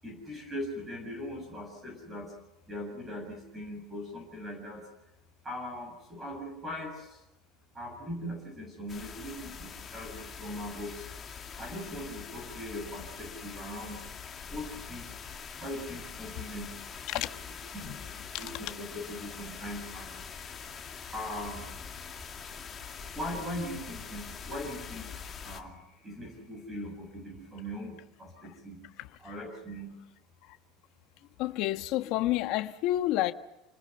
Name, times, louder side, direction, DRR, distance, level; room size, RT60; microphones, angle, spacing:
voice 1, 0.0-2.3 2.7-4.9 5.4-7.2 7.7-11.1 11.6-14.0 14.5-15.1 15.6-16.8 17.1-17.2 17.7-20.1 21.1-21.7 23.1-25.1 25.4-28.8 29.2-30.0, left 1 dB, 10° right, 7.3 m, -40 dB
sound 1, 8.9-25.6, left 6 dB, 20° left, 2.5 m, -44 dB
voice 2, 31.4-33.3, left 15 dB, 50° left, 1.5 m, -29 dB
29.0 x 20.5 x 6.9 m
cardioid pair, 170°, 0 cm